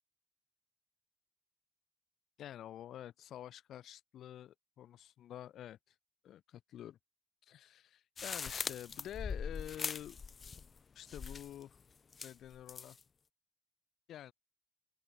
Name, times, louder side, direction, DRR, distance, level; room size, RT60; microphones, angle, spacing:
voice 1, 2.4-5.9 6.2-7.0 7.4-10.2 10.9-11.8 12.2-13.0 14.1-14.3, left 11 dB, 90° left, 4.1 m, -48 dB
sound 1, 8.2-10.8 11.1-11.6 12.1-13.0, left 5 dB, 50° left, 0.5 m, -41 dB
open air
cardioid pair, 75°, 0 cm